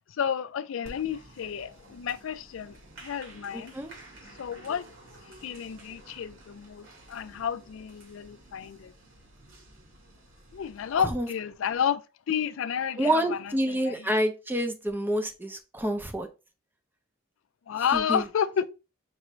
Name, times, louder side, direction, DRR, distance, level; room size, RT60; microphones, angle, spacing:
voice 1, 0.0-2.8 3.0-3.7 4.4-4.8 5.4-8.9 10.5-12.0 12.3-14.2 17.7-18.6, left 8 dB, 70° left, 0.4 m, -31 dB
Applause, 0.8-11.0, right 1 dB, 65° right, 1.7 m, -51 dB
voice 2, 3.5-3.9 11.0-11.3 13.0-16.3 17.9-18.3, right 1 dB, 10° right, 0.5 m, -28 dB
5.3 x 2.5 x 3.1 m
head